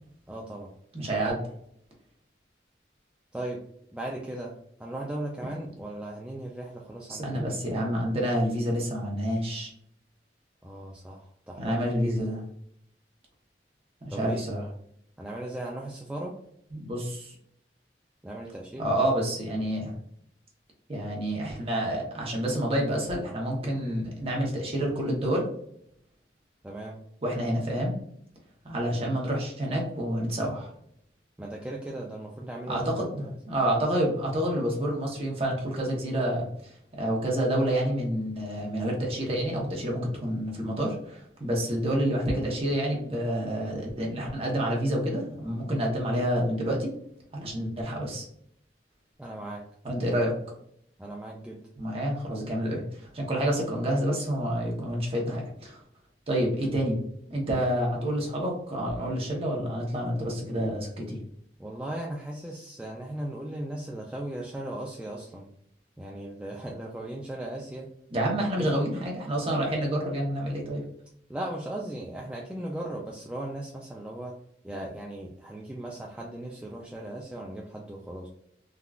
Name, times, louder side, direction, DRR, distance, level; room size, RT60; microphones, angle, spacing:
voice 1, 0.3-0.7 3.3-3.6 3.9-4.5 4.8-7.6 10.6-12.3 14.1-14.5 15.2-16.3 18.2-18.9 26.6-27.0 31.4-33.3 49.2-49.6 51.0-51.6 61.6-65.5 66.0-67.9 68.6-68.8 71.3-74.3 74.6-78.3, right 1 dB, 5° right, -3 dB, 0.3 m, -37 dB
voice 2, 0.9-1.4 7.1-9.7 11.6-12.4 14.0-14.6 16.7-17.3 18.8-19.9 20.9-25.5 27.2-27.9 28.6-30.7 32.7-46.9 47.3-48.3 49.8-50.3 51.8-55.8 56.3-57.0 57.3-61.2 68.1-70.8, equal, 35° right, -2 dB, 0.9 m, -28 dB
3.6 x 2.3 x 2.3 m, 0.70 s
head